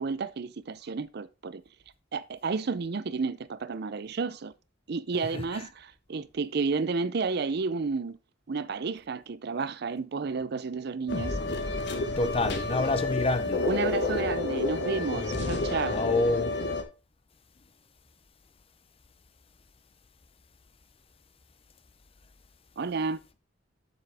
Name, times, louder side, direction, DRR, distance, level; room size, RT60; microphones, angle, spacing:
voice 1, 0.0-1.6 2.1-4.5 4.9-8.2 8.5-11.4 13.7-16.0 22.8-23.2, right 4 dB, 60° right, 0.5 m, -31 dB
sound 1, 11.1-16.8, left 2 dB, 65° left, 1.2 m, -30 dB
voice 2, 12.2-13.6 15.1-15.4 15.9-16.5, left 2 dB, 30° left, 0.6 m, -27 dB
7.6 x 7.0 x 3.5 m
head